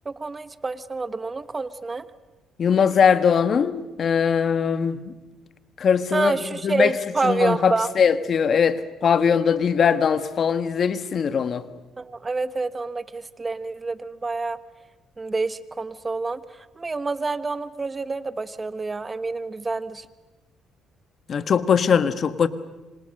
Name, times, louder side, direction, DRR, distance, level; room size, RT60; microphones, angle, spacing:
voice 1, 0.0-2.0 6.1-7.9 12.0-14.6 15.2-20.0, right 3 dB, 25° right, 1.3 m, -28 dB
voice 2, 2.6-5.1 5.8-6.4 6.6-6.9 7.2-11.7 21.3-22.5, left 7 dB, 50° left, 1.3 m, -21 dB
27.0 x 26.0 x 6.6 m
cardioid pair, 85°, 0 cm